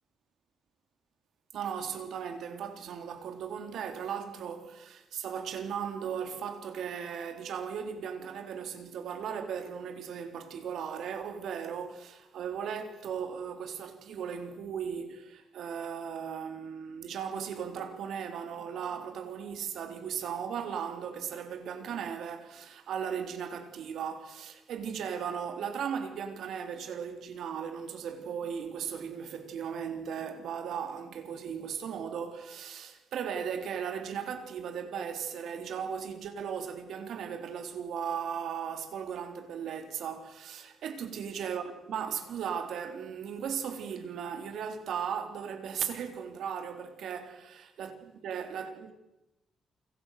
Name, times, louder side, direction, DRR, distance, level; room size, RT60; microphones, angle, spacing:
voice 1, 1.5-47.4 47.8-48.0 48.2-48.9, right 7 dB, 70° right, 3.6 m, -37 dB
29.5 x 25.0 x 6.7 m
cardioid pair, 155°, 0 cm